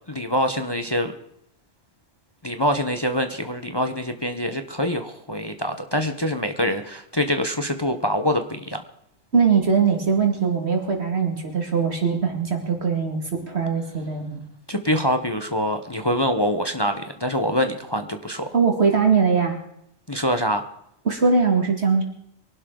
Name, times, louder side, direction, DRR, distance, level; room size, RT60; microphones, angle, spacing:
voice 1, 0.1-1.1 2.4-8.8 14.7-18.5 20.1-20.6, equal, 20° left, 7 dB, 1.0 m, -25 dB
voice 2, 9.3-14.4 18.5-19.6 21.1-22.0, right 5 dB, 55° right, 2 dB, 2.6 m, -21 dB
23.5 x 12.0 x 3.9 m, 0.74 s
omnidirectional pair, 1.4 m